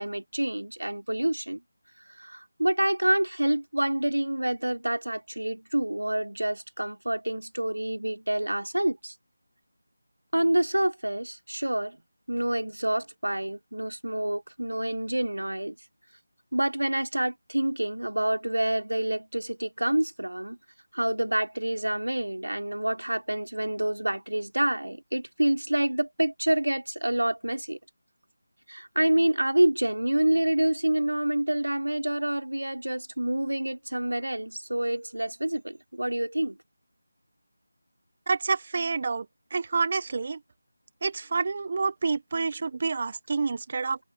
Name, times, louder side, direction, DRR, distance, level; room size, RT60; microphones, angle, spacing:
voice 1, 0.0-1.6 2.2-9.1 10.3-12.0 12.3-15.8 16.5-20.6 20.9-27.8 28.7-36.6, right 1 dB, 85° right, 3.1 m, -27 dB
voice 2, 38.3-39.2 39.5-40.4 41.0-44.0, right 4 dB, 40° right, 1.0 m, -28 dB
figure-of-eight pair, 165°, 0 cm